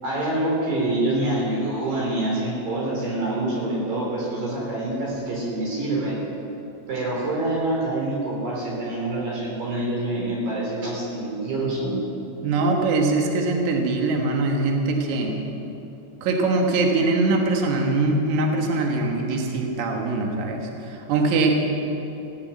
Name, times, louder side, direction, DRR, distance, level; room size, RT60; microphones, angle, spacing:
voice 1, 0.0-6.2 6.9-12.0 15.5-15.6, right 1 dB, 45° right, -4 dB, 5.2 m, -26 dB
voice 2, 12.4-15.4 16.2-21.6, right 3 dB, 85° right, 2 dB, 1.6 m, -22 dB
15.5 x 8.9 x 9.1 m, 2.9 s
omnidirectional pair, 5.7 m